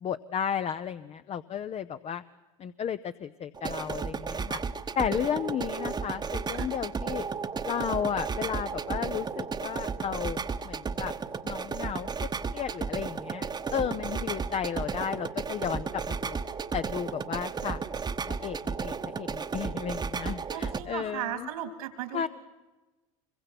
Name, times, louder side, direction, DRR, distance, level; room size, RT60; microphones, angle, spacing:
voice 1, 0.0-2.2 2.6-4.6 5.0-7.3 7.6-11.1 11.4-16.4 16.7-17.8 18.3-21.5 22.1-22.3, left 8 dB, 35° left, 11 dB, 0.7 m, -33 dB
sound 1, 3.5-20.8, right 5 dB, 25° right, 1.1 m, -33 dB
voice 2, 20.5-22.3, right 11 dB, 80° right, 9 dB, 3.1 m, -36 dB
25.0 x 23.0 x 6.0 m, 1.2 s
hypercardioid pair, 85°, 18 cm